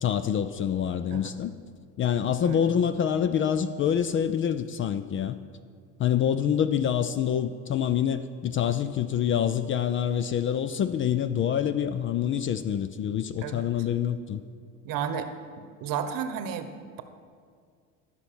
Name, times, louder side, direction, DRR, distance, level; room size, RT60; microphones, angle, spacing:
voice 1, 0.0-1.5 2.0-5.4 6.0-14.4, left 9 dB, 30° left, 12 dB, 0.4 m, -26 dB
voice 2, 14.8-15.3 15.8-17.0, right 8 dB, 55° right, 9 dB, 1.0 m, -32 dB
13.5 x 5.9 x 6.1 m, 2.1 s
supercardioid pair, 90°, 40 cm